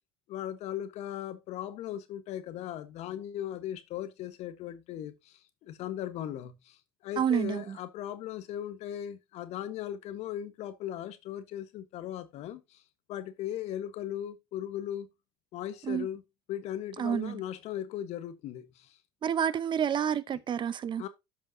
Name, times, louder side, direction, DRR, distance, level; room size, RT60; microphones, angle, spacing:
voice 1, 0.3-6.8 7.0-12.8 13.1-15.1 15.5-16.2 16.5-19.0 21.0-21.1, left 11 dB, 65° left, 1.3 m, -38 dB
voice 2, 7.2-7.8 15.8-16.1 17.0-17.4 19.2-21.0, right 8 dB, 40° right, 0.8 m, -29 dB
13.0 x 5.4 x 2.8 m
supercardioid pair, 85°, 12 cm